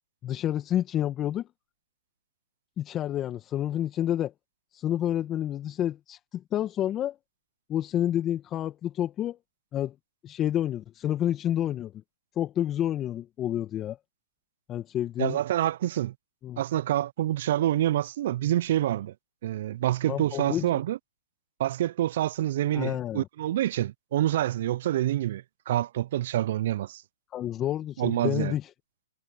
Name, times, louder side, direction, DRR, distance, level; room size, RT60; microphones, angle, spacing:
voice 1, 0.2-1.5 2.8-4.3 4.7-7.2 7.7-9.4 9.7-9.9 10.2-11.9 12.4-14.0 14.7-15.4 16.4-16.6 20.1-20.8 22.7-23.3 27.3-28.7, left 11 dB, 25° left, 1.8 m, -29 dB
voice 2, 15.2-16.1 16.6-19.1 19.4-21.0 21.6-27.0 28.0-28.5, right 13 dB, 55° right, 0.4 m, -27 dB
hypercardioid pair, 130°, 0 cm